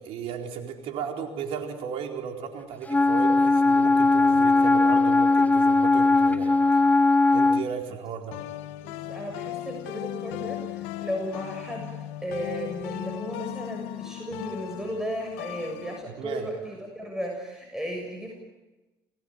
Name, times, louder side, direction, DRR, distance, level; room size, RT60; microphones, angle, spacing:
voice 1, 0.0-6.8 7.3-8.4 16.2-16.5, right 7 dB, 75° right, 3 dB, 4.5 m, -35 dB
Wind instrument woodwind instrument, 2.9-7.7, left 3 dB, 15° left, 0.9 m, -19 dB
sound 1, 3.0-5.6 6.3-7.8 8.3-16.0, left 14 dB, 90° left, 1.2 m, -38 dB
voice 2, 8.8-11.9 12.2-18.3, equal, 5° right, 1 dB, 7.0 m, -35 dB
28.0 x 18.5 x 9.3 m, 1.1 s
supercardioid pair, 85°, 10 cm